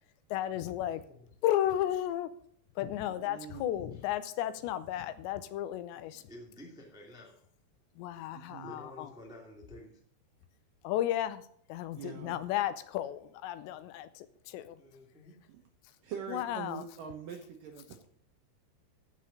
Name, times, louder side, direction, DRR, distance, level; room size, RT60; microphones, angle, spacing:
voice 1, 0.3-1.0 1.4-2.3 2.8-6.2 8.0-9.1 10.8-11.4 11.7-14.8 16.3-16.8, left 12 dB, 85° left, 13 dB, 2.9 m, -33 dB
voice 2, 0.8-1.3 3.9-4.1 6.2-7.5 8.6-10.0 14.8-15.4, left 1 dB, 5° right, 0 dB, 0.5 m, -51 dB
voice 3, 3.3-3.9 6.1-6.2 8.3-8.8 12.0-12.5 15.5-15.6 16.0-18.1, right 7 dB, 75° right, 3 dB, 2.0 m, -44 dB
15.0 x 5.6 x 6.5 m, 0.63 s
omnidirectional pair, 5.1 m